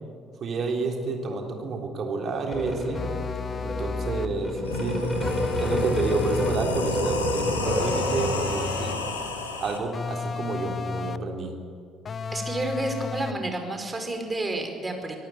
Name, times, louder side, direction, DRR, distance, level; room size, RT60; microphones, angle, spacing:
voice 1, 0.4-3.0 3.6-5.3 5.6-9.0 9.6-11.6, right 3 dB, 45° right, 2 dB, 3.6 m, -29 dB
sound 1, 2.5-8.6, left 1 dB, 10° left, 5.4 m, -30 dB
sound 2, 2.9-4.4 5.2-6.7 7.6-9.1 9.9-11.4 12.0-13.5, left 5 dB, 35° left, 0.8 m, -33 dB
sound 3, 4.5-9.8, left 3 dB, 80° left, 2.2 m, -31 dB
voice 2, 12.3-15.2, right 2 dB, 20° right, 5 dB, 4.9 m, -30 dB
25.0 x 17.5 x 9.4 m, 2.3 s
figure-of-eight pair, 50°, 0 cm